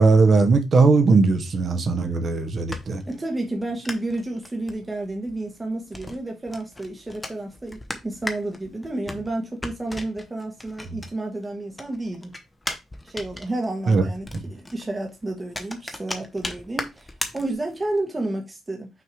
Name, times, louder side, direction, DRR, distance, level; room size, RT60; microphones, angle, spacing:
voice 1, 0.0-3.0 13.9-14.0, right 4 dB, 35° right, 1.0 m, -18 dB
sound 1, 2.3-11.4 11.7-18.0, left 1 dB, 10° left, 0.8 m, -37 dB
voice 2, 3.0-12.3 13.0-18.9, right 2 dB, 15° right, 1.2 m, -31 dB
5.9 x 3.6 x 4.7 m
cardioid pair, 175°, 0 cm